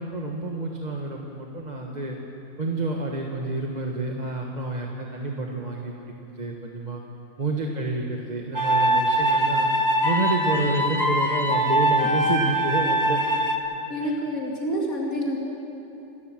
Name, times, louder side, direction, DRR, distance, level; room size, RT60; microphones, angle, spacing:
voice 1, 0.0-2.2 2.6-7.0 7.4-9.7 10.0-13.2 14.0-14.1, right 2 dB, 30° right, 0 dB, 1.4 m, -29 dB
sound 1, 8.5-13.6, right 1 dB, 15° right, 1.2 m, -22 dB
voice 2, 13.9-15.4, equal, 80° left, -2 dB, 3.1 m, -27 dB
27.5 x 13.0 x 7.6 m, 3.0 s
omnidirectional pair, 1.5 m